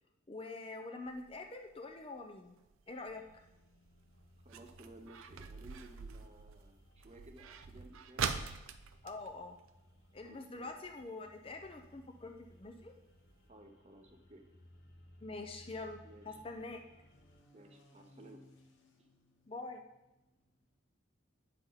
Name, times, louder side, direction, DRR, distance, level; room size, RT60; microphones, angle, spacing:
voice 1, 0.3-2.6 2.9-3.2 9.0-9.6 10.1-12.9 15.2-16.8 19.5-19.8, left 3 dB, 25° left, 5 dB, 0.5 m, -45 dB
sound 1, 1.1-10.3 10.6-10.7 11.0-11.4 11.9-12.0 12.5-12.6 12.9-13.0 13.3-13.4, right 6 dB, 85° right, 0.5 m, -44 dB
sound 2, 3.1-17.4, left 1 dB, 55° left, 0.9 m, -63 dB
voice 2, 4.4-8.3 10.2-10.8 13.5-14.4 16.0-16.4 17.5-18.4 19.0-19.1, right 1 dB, 30° right, 4 dB, 0.7 m, -56 dB
sound 3, 13.3-20.8, left 1 dB, 70° left, 1.2 m, -66 dB
8.8 x 5.7 x 4.0 m, 0.96 s
head